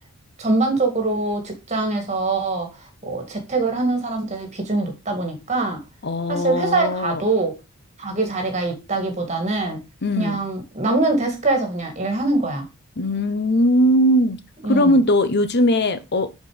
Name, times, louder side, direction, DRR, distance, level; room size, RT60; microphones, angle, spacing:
voice 1, 0.4-2.7 3.0-5.8 6.3-7.5 8.0-9.8 10.2-12.7 14.6-14.9, right 2 dB, 30° right, 1.9 m, -23 dB
voice 2, 6.0-7.2 10.0-10.4 13.0-14.4 14.7-16.3, equal, 50° left, 0.8 m, -19 dB
6.3 x 4.5 x 4.9 m
head